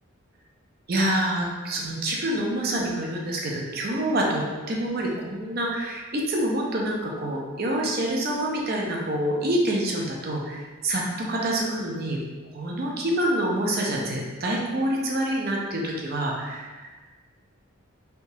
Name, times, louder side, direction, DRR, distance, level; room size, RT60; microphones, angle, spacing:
voice 1, 0.9-12.2 12.5-16.9, right 1 dB, 45° right, -1 dB, 0.5 m, -27 dB
3.3 x 2.8 x 2.7 m, 1.3 s
head